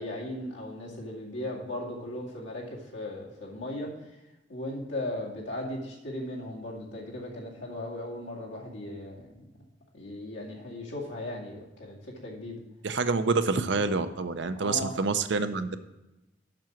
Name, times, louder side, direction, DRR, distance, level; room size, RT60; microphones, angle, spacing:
voice 1, 0.0-4.2 4.5-9.4 9.9-12.6 14.6-15.0, left 1 dB, 75° left, -3 dB, 2.2 m, -37 dB
voice 2, 12.8-15.8, right 4 dB, 65° right, 10 dB, 0.6 m, -27 dB
7.6 x 6.1 x 5.8 m, 0.97 s
head